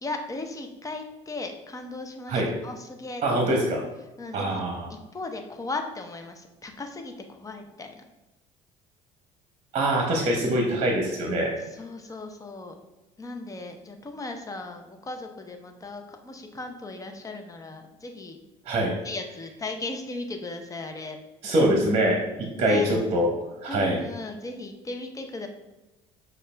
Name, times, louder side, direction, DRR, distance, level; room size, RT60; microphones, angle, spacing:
voice 1, 0.0-3.7 4.2-4.6 4.9-8.0 11.7-12.7 13.2-18.4 19.0-21.2 22.6-22.9 23.7-25.5, left 2 dB, 25° left, 5 dB, 0.8 m, -37 dB
voice 2, 3.2-3.8 4.3-4.9 9.7-11.5 18.7-18.9 21.4-23.3 23.6-24.0, right 1 dB, 45° right, 0 dB, 1.0 m, -24 dB
6.4 x 2.5 x 3.3 m, 1.0 s
supercardioid pair, 75°, 15 cm